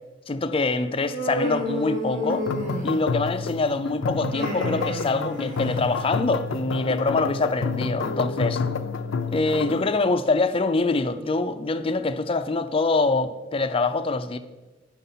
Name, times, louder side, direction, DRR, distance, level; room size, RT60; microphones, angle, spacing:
voice 1, 0.3-2.5 2.8-8.6 9.3-14.4, left 3 dB, 30° left, 0.4 m, -24 dB
Human voice, 1.0-3.3 4.1-6.0, equal, 40° right, 1.5 m, -30 dB
sound 1, 2.3-9.9, left 4 dB, 80° left, 0.5 m, -29 dB
9.1 x 5.6 x 5.5 m
head